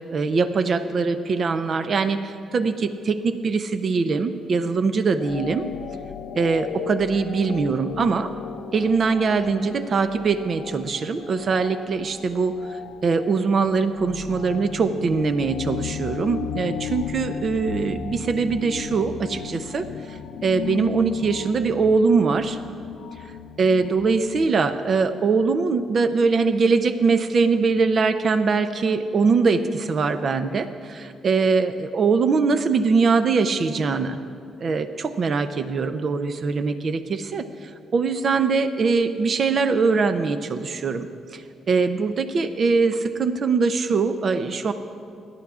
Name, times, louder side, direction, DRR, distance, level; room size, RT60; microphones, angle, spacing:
voice 1, 0.0-5.7 6.4-8.3 8.7-22.6 23.6-30.6 31.2-34.2 34.6-44.7, right 4 dB, 50° right, 9 dB, 0.5 m, -22 dB
sound 1, 5.2-24.6, left 9 dB, 85° left, 0.5 m, -35 dB
27.0 x 11.5 x 2.4 m, 2.5 s
cardioid pair, 90°, 0 cm